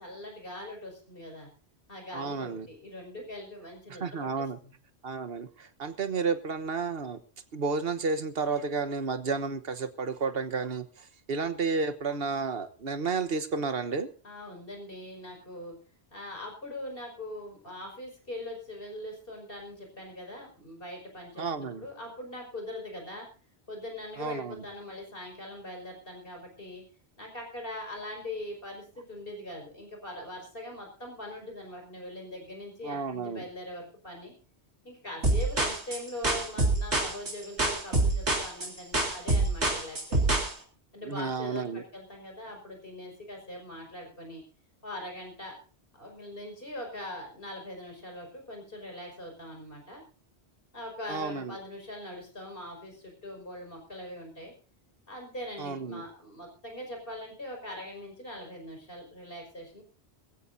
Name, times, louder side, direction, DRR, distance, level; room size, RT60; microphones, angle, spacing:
voice 1, 0.0-1.5 1.9-4.7 14.2-15.7 16.1-23.3 23.7-26.8 27.2-34.3 34.8-40.4 40.9-44.4 44.8-45.6 45.9-50.0 50.7-54.5 55.1-59.8, left 1 dB, 55° left, 2 dB, 5.7 m, -42 dB
voice 2, 2.1-2.7 4.0-4.6 5.0-7.2 7.5-14.1 21.4-21.8 24.2-24.6 32.8-33.4 41.0-41.8 51.1-51.6 55.6-56.0, right 4 dB, 60° right, 10 dB, 1.4 m, -32 dB
sound 1, 35.2-40.5, right 2 dB, 85° right, 3.9 m, -26 dB
21.5 x 15.5 x 2.7 m, 0.37 s
omnidirectional pair, 1.1 m